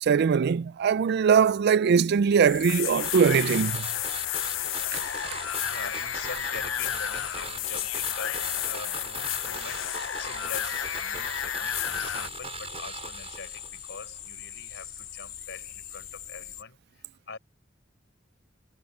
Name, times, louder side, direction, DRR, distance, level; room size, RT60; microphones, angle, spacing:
voice 1, 0.0-3.9 4.9-5.0, right 6 dB, 55° right, 0.4 m, -21 dB
sound 1, 2.4-12.3, left 11 dB, 80° left, 0.7 m, -32 dB
sound 2, 2.4-16.6, left 10 dB, 50° left, 4.5 m, -42 dB
sound 3, 3.0-14.0 14.3-14.4, right 5 dB, 35° right, 5.1 m, -40 dB
voice 2, 5.6-17.4, left 5 dB, 65° left, 4.3 m, -44 dB
head